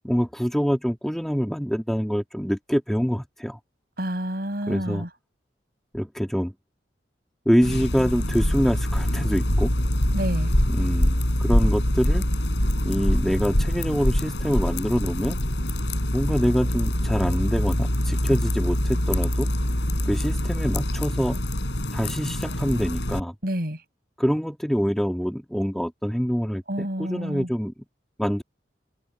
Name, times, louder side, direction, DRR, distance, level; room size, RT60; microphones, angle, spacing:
voice 1, 0.0-3.6 4.7-5.0 5.9-6.5 7.5-9.7 10.7-12.3 12.9-15.4 16.1-19.5 20.1-21.4 21.9-23.3 24.2-27.7 28.2-28.4, equal, ahead, 1.8 m, -25 dB
voice 2, 4.0-5.1 10.1-10.5 23.4-23.8 26.7-27.5, equal, 55° right, 7.5 m, -29 dB
sound 1, 7.6-23.2, left 1 dB, 80° left, 4.7 m, -24 dB
head